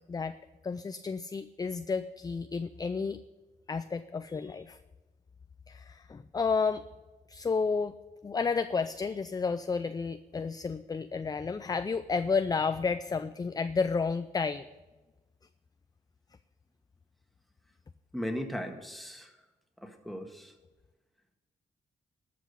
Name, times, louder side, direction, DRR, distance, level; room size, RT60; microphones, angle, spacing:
voice 1, 0.6-3.2 3.7-4.8 5.7-6.8 7.3-7.9 8.2-14.7, left 5 dB, 25° left, 12 dB, 0.4 m, -31 dB
voice 2, 18.1-19.3 19.8-20.5, equal, ahead, 4 dB, 1.6 m, -37 dB
12.0 x 6.0 x 8.3 m, 1.2 s
cardioid pair, 85°, 17 cm